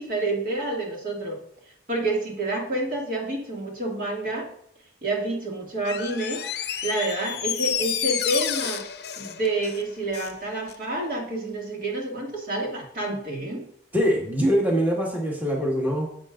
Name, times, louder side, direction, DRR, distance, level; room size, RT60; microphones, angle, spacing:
voice 1, 0.0-1.4 1.9-4.5 5.0-6.5 6.8-8.8 9.2-13.7, right 2 dB, 50° right, -1 dB, 2.1 m, -28 dB
Door, 5.8-10.4 10.7-10.8, left 10 dB, 65° left, 0.6 m, -30 dB
voice 2, 13.9-16.1, equal, 10° right, -2 dB, 1.6 m, -23 dB
10.5 x 7.8 x 2.5 m, 0.70 s
head